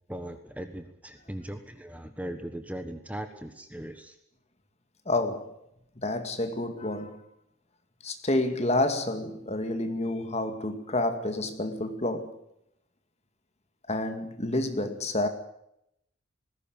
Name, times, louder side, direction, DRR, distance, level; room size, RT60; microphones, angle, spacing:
voice 1, 0.1-4.2, right 1 dB, 5° right, 1.3 m, -39 dB
voice 2, 5.1-5.5 6.0-7.2 8.0-12.4 13.9-15.3, left 2 dB, 30° left, 2.3 m, -29 dB
20.0 x 16.5 x 8.9 m
head